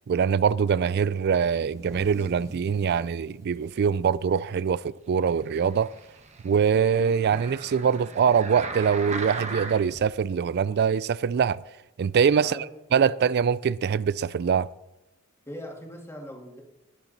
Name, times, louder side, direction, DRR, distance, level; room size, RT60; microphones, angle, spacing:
voice 1, 0.1-5.9 6.4-11.6 12.0-12.7 12.9-14.7, right 6 dB, 50° right, 0.3 m, -23 dB
sound 1, 1.4-5.1 5.5-5.6 6.0-6.4 7.6-7.7 8.7-8.8, right 1 dB, 15° right, 2.3 m, -48 dB
sound 2, 5.5-10.1 10.7-10.8, right 4 dB, 30° right, 1.1 m, -38 dB
voice 2, 12.4-12.7 15.5-16.6, equal, 10° left, 2.1 m, -40 dB
19.0 x 7.2 x 4.0 m
head